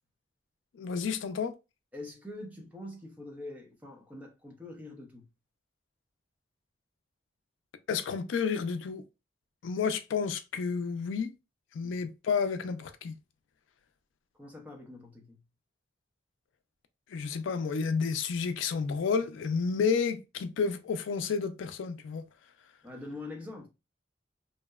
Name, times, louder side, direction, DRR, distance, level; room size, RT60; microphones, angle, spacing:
voice 1, 0.7-1.5 7.9-9.0 9.6-11.3 11.7-13.2 17.1-22.2, left 5 dB, 85° left, 0.4 m, -31 dB
voice 2, 1.9-5.2 11.8-12.1 14.4-15.4 22.8-23.7, left 2 dB, 10° right, 0.6 m, -44 dB
2.7 x 2.1 x 2.2 m
head